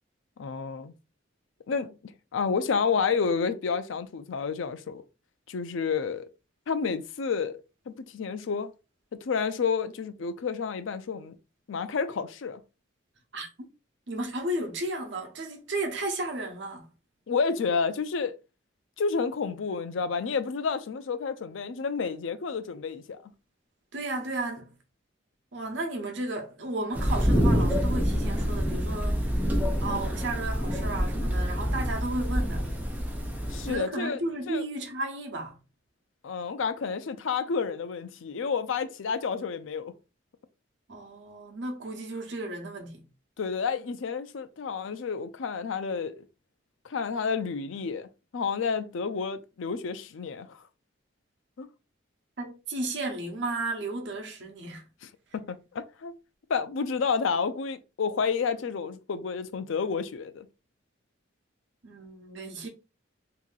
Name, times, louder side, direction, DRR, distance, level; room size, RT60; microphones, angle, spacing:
voice 1, 0.4-0.9 1.7-5.0 5.5-6.3 6.7-8.7 9.1-11.4 11.7-12.6 17.3-18.3 19.0-23.3 33.5-34.2 34.5-34.6 36.2-39.9 43.4-46.3 46.8-50.6 51.6-51.7 55.0-56.1 56.5-60.5, left 5 dB, 80° left, 0.4 m, -30 dB
voice 2, 14.1-16.9 23.9-24.7 25.5-29.5 29.8-32.7 33.6-35.6 40.9-43.0 52.4-54.8 61.8-62.7, right 2 dB, 65° right, 0.9 m, -34 dB
sound 1, 26.9-33.8, equal, 10° right, 0.6 m, -27 dB
2.9 x 2.6 x 3.8 m
head